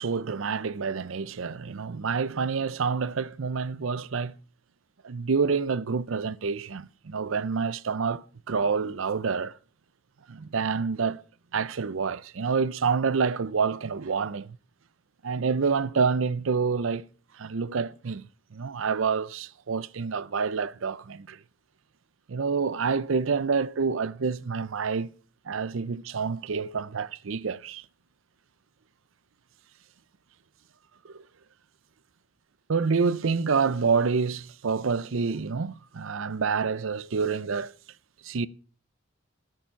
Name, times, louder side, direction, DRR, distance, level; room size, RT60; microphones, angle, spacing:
voice 1, 0.0-4.3 5.0-9.6 10.3-11.2 11.5-14.6 15.2-17.1 17.3-21.4 22.3-25.1 25.5-27.8 31.0-31.2 32.7-37.7 38.2-38.5, right 5 dB, 75° right, 0.6 m, -28 dB
13.0 x 8.9 x 5.7 m
head